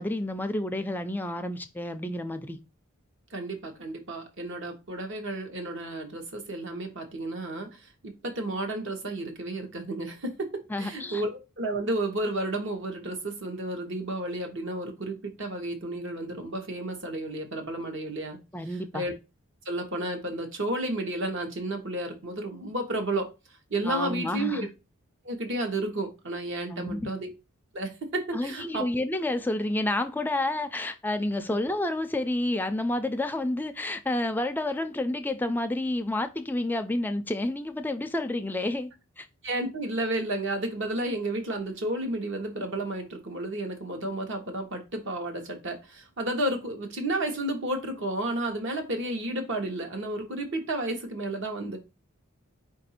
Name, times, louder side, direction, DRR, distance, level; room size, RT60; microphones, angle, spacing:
voice 1, 0.0-2.6 10.7-11.2 18.5-19.0 23.8-24.7 26.7-27.1 28.3-38.9 39.2-39.3, left 1 dB, 10° left, 0.3 m, -29 dB
voice 2, 3.3-10.5 10.8-18.4 18.9-19.1 19.6-23.3 23.7-24.7 25.2-27.3 27.7-28.9 39.4-51.8, right 1 dB, 60° right, 1.0 m, -32 dB
4.8 x 2.5 x 4.1 m
head